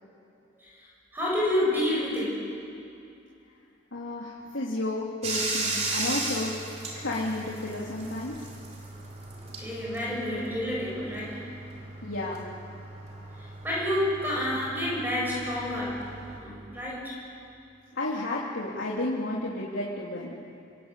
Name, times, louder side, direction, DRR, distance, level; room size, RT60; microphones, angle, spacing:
voice 1, 0.6-2.5 9.4-11.4 13.1-16.1 16.4-17.2, left 1 dB, 10° right, -5 dB, 8.0 m, -29 dB
voice 2, 3.9-8.4 12.0-12.4 17.9-20.3, left 2 dB, 85° left, -6 dB, 3.3 m, -32 dB
Bathtub (filling or washing), 5.2-16.4, right 2 dB, 35° right, 3.9 m, -36 dB
27.0 x 26.0 x 8.5 m, 2.6 s
head